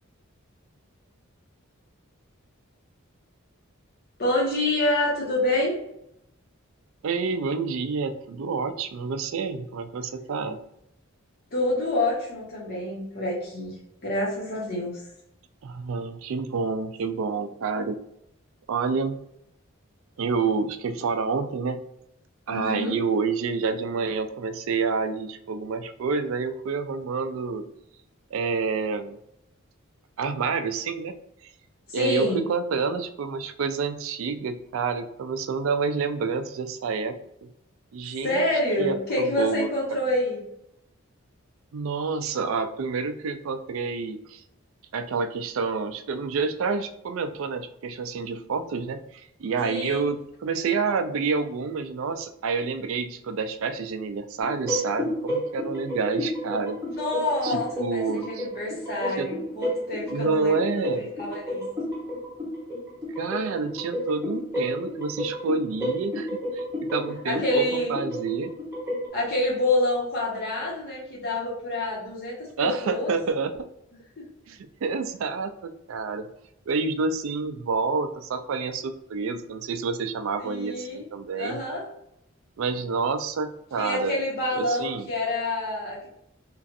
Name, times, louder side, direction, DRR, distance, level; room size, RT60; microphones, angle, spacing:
voice 1, 4.2-5.8 11.5-13.8 14.0-15.0 22.5-23.0 31.9-32.4 38.2-40.4 49.6-50.0 56.8-61.6 67.2-67.9 69.1-73.1 74.2-74.3 80.4-81.1 81.4-81.8 83.8-86.1, left 1 dB, 45° left, -6 dB, 1.1 m, -27 dB
voice 2, 7.0-10.6 15.6-18.0 18.7-19.2 20.2-21.8 22.5-27.7 28.3-29.2 30.2-31.1 31.9-37.2 37.9-38.5 38.8-40.0 41.7-44.4 44.9-56.8 57.4-58.5 59.2-59.3 60.1-61.1 63.2-66.3 66.5-68.5 72.6-73.5 74.5-76.3 76.7-81.6 82.6-84.2 84.5-85.1, right 4 dB, 70° right, 9 dB, 0.4 m, -28 dB
sound 1, 54.4-69.1, equal, 10° right, 0.9 m, -32 dB
3.0 x 2.5 x 2.6 m, 0.78 s
head